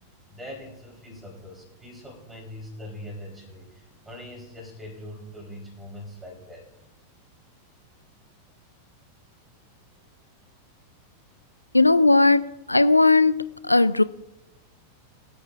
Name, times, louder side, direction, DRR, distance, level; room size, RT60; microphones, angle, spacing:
voice 1, 0.3-6.7, left 1 dB, 10° right, 3.9 m, -42 dB
voice 2, 11.7-14.0, left 3 dB, 85° left, 0.4 m, -18 dB
22.0 x 8.6 x 2.5 m
figure-of-eight pair, 90°, 0 cm